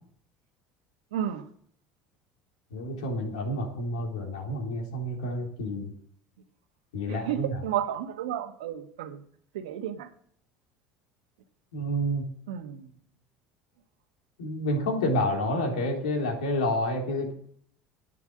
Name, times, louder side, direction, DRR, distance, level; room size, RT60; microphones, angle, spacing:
voice 1, 1.1-1.4 7.1-9.2 9.5-10.1 12.5-12.9, right 10 dB, 85° right, 8 dB, 1.3 m, -32 dB
voice 2, 2.7-5.9 6.9-7.6 11.7-12.2 14.4-17.3, left 1 dB, 90° left, 1 dB, 3.4 m, -29 dB
10.0 x 9.2 x 7.5 m, 0.62 s
hypercardioid pair, 85°, 4 cm